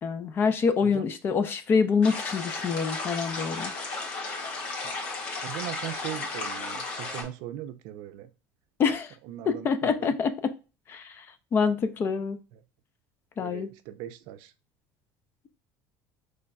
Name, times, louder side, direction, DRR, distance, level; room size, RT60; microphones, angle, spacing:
voice 1, 0.0-3.7 8.8-9.1 9.5-10.5 10.9-11.2 11.5-12.4 13.4-13.7, left 5 dB, 30° left, 0.5 m, -26 dB
sound 1, 2.0-7.2, left 3 dB, 75° left, 1.5 m, -34 dB
voice 2, 5.4-8.3 9.2-10.2 12.5-12.6 13.4-14.5, right 13 dB, 75° right, 0.5 m, -39 dB
5.2 x 3.3 x 2.3 m
cardioid pair, 155°, 7 cm